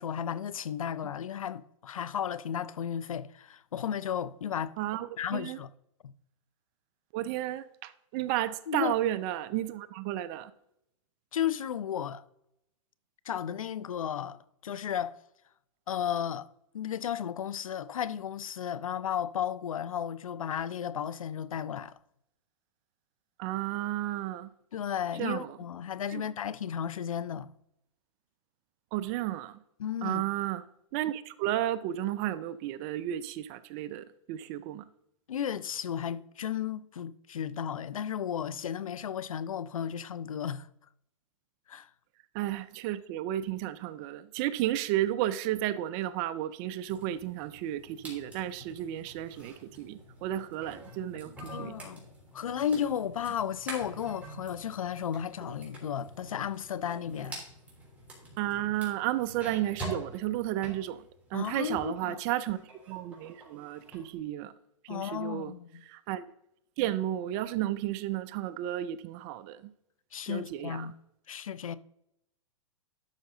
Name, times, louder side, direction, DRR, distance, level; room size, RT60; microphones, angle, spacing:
voice 1, 0.0-4.7 5.2-5.7 6.0-6.1 8.7-8.9 11.3-12.2 13.3-14.4 14.6-15.1 15.9-16.5 16.7-21.9 24.7-27.5 29.8-30.2 35.3-40.7 41.7-41.9 51.4-52.1 52.3-57.4 61.3-62.2 64.9-65.8 70.1-70.9 71.3-71.8, left 9 dB, 90° left, 0.5 m, -34 dB
voice 2, 4.8-5.1 5.3-5.6 7.1-10.5 23.4-24.5 25.2-25.6 26.1-26.2 28.9-29.6 30.0-30.6 30.9-34.8 42.3-51.3 51.6-51.8 58.4-61.0 61.3-62.6 62.9-64.5 64.8-65.5 65.9-66.2 66.8-69.7 70.3-70.9, right 13 dB, 35° right, 0.4 m, -33 dB
sound 1, 46.9-62.0 62.4-64.0, right 1 dB, 10° right, 3.5 m, -46 dB
11.5 x 6.5 x 3.8 m
hypercardioid pair, 135°, 17 cm